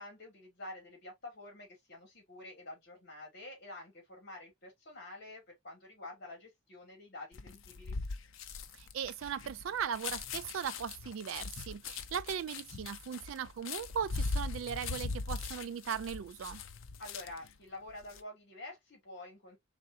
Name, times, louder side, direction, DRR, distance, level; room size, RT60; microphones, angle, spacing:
voice 1, 0.0-8.0 17.0-19.6, left 2 dB, 55° left, 2.7 m, -48 dB
sound 1, 7.3-17.5 17.9-18.2, left 4 dB, 75° left, 0.6 m, -40 dB
voice 2, 8.7-16.6, right 8 dB, 70° right, 0.3 m, -38 dB
4.1 x 3.6 x 2.7 m
head